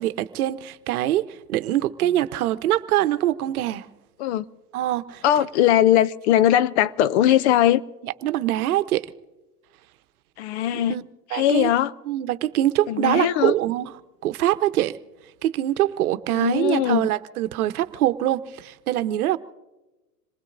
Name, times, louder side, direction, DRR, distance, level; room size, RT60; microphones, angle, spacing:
voice 1, 0.0-3.9 4.7-5.2 8.0-9.1 10.7-11.0 11.3-11.7 12.1-13.9 14.2-15.0 15.4-19.4, right 13 dB, 65° right, 0.9 m, -24 dB
voice 2, 5.2-7.8 10.4-11.0 11.3-11.9 12.9-13.5 16.3-17.0, left 12 dB, 45° left, 0.5 m, -20 dB
27.0 x 20.0 x 2.6 m
hypercardioid pair, 120°, 47 cm